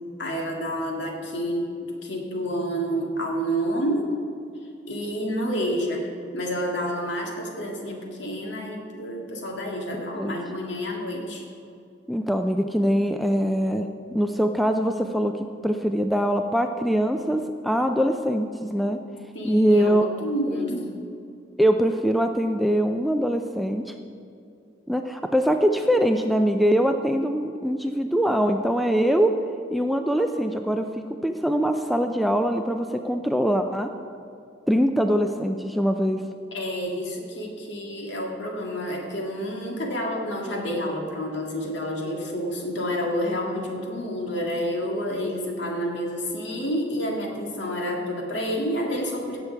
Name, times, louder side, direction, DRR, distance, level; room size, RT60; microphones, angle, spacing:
voice 1, 0.2-1.7 2.0-4.1 4.9-6.1 6.3-11.4 19.3-20.9 36.5-49.4, equal, 70° left, 0 dB, 1.9 m, -29 dB
voice 2, 12.1-19.0 19.4-20.0 21.6-23.9 24.9-29.3 29.7-33.9 34.7-36.2, equal, ahead, 5 dB, 0.3 m, -23 dB
16.5 x 7.1 x 4.5 m, 2.5 s
head